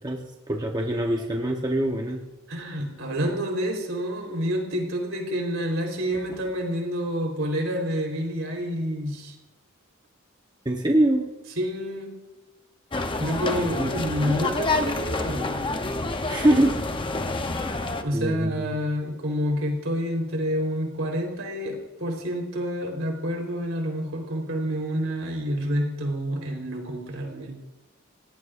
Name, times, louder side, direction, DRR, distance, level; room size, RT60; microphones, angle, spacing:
voice 1, 0.0-2.2 10.6-11.3 13.7-14.3 16.3-16.8 18.1-18.8, right 1 dB, 20° right, 1 dB, 0.9 m, -24 dB
voice 2, 2.5-9.3 11.6-12.2 13.2-15.7 17.9-27.5, equal, 70° right, 1 dB, 3.8 m, -28 dB
sound 1, 12.9-18.0, left 2 dB, 25° left, 0.8 m, -28 dB
29.5 x 17.5 x 2.5 m, 1.1 s
head